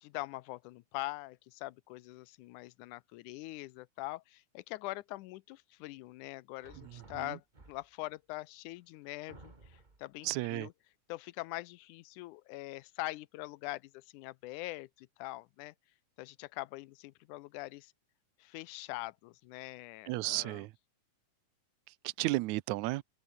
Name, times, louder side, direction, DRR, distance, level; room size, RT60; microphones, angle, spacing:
voice 1, 0.0-10.7 11.1-15.7 16.2-17.9 18.4-20.6, left 19 dB, 80° left, 2.1 m, -43 dB
sound 1, 6.6-8.1 8.8-8.9 9.3-10.1, right 3 dB, 20° right, 1.6 m, -56 dB
voice 2, 6.8-7.4 10.2-10.7 20.1-20.7 22.0-23.0, right 20 dB, 75° right, 1.9 m, -34 dB
open air
omnidirectional pair, 3.7 m